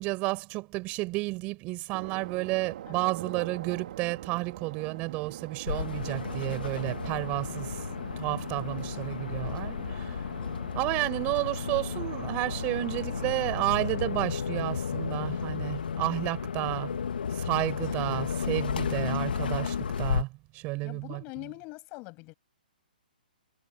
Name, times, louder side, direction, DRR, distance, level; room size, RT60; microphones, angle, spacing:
voice 1, 0.0-7.9 8.2-10.2 10.7-17.0 17.3-20.3 20.5-21.2, right 23 dB, 30° right, 4.7 m, -31 dB
sound 1, 1.9-13.7, right 11 dB, 55° right, 2.4 m, -43 dB
sound 2, 5.7-20.2, left 6 dB, 80° left, 2.1 m, -33 dB
voice 2, 20.8-22.3, left 27 dB, 30° left, 6.6 m, -43 dB
hypercardioid pair, 145°, 5 cm